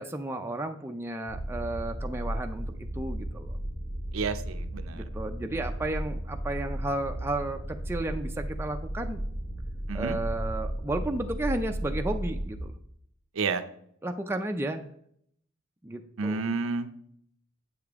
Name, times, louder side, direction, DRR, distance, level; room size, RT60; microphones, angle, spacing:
voice 1, 0.0-2.7 2.9-3.6 4.9-9.2 9.9-12.7 14.0-14.8 15.8-16.5, right 2 dB, 10° right, 4 dB, 0.4 m, -33 dB
sound 1, 1.3-12.6, right 1 dB, 75° left, 3.6 m, -34 dB
voice 2, 4.1-5.0 9.9-10.2 13.4-13.6 16.2-16.9, right 4 dB, 60° right, 10 dB, 0.5 m, -30 dB
8.1 x 6.8 x 3.5 m, 0.68 s
head